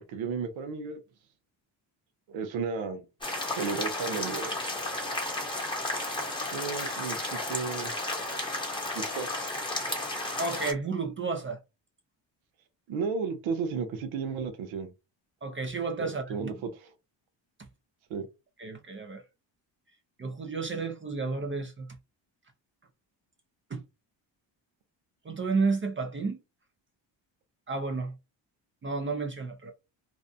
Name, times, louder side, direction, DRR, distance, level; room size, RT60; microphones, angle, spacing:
voice 1, 0.1-1.0 2.3-3.1 3.6-4.6 6.5-7.9 8.9-9.3 12.9-14.9 16.0-16.9 18.1-18.3, right 5 dB, 85° right, 0.7 m, -33 dB
sound 1, 3.2-10.7, left 2 dB, 10° left, 1.0 m, -33 dB
voice 2, 10.4-11.6 15.4-16.5 18.6-19.2 20.2-21.9 23.7-23.8 25.2-26.4 27.7-28.1 28.8-29.7, right 4 dB, 25° right, 0.5 m, -31 dB
2.6 x 2.1 x 2.6 m
cardioid pair, 95°, 46 cm